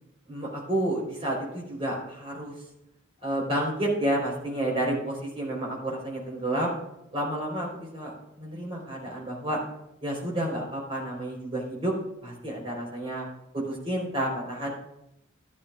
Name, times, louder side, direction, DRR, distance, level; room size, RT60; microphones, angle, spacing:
voice 1, 0.3-2.5 3.2-6.8 7.1-9.6 10.0-11.9 12.2-13.3 13.7-14.8, right 1 dB, 25° right, -2 dB, 3.8 m, -30 dB
15.0 x 11.5 x 2.4 m, 0.82 s
head